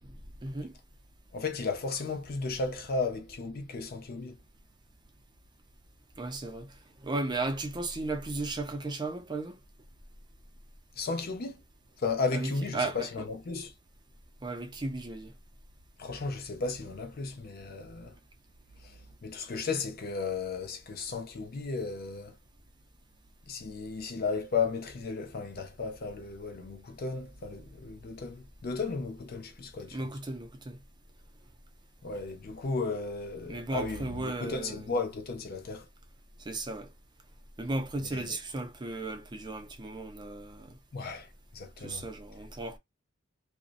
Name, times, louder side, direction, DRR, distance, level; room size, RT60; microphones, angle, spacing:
voice 1, 0.4-0.7 6.2-6.7 7.0-9.6 12.3-13.3 14.4-15.3 29.9-30.8 33.5-34.9 36.4-36.9 37.6-40.8 41.8-42.8, right 2 dB, 20° right, 0.4 m, -35 dB
voice 2, 1.3-4.4 11.0-11.6 12.0-13.7 16.0-18.2 18.8-22.4 23.5-30.1 32.0-35.9 38.1-38.4 40.9-42.1, left 4 dB, 50° left, 0.5 m, -34 dB
2.6 x 2.0 x 2.4 m
head